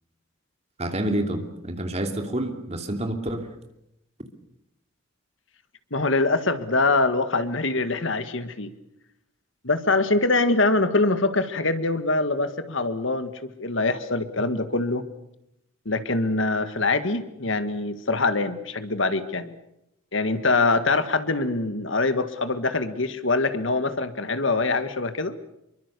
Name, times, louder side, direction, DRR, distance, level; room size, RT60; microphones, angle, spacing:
voice 1, 0.8-3.5, right 1 dB, 30° right, 5 dB, 2.9 m, -28 dB
voice 2, 5.9-8.7 9.6-15.0 15.9-19.6 20.1-25.3, left 3 dB, 65° left, 11 dB, 1.8 m, -24 dB
27.0 x 23.5 x 6.9 m, 0.82 s
head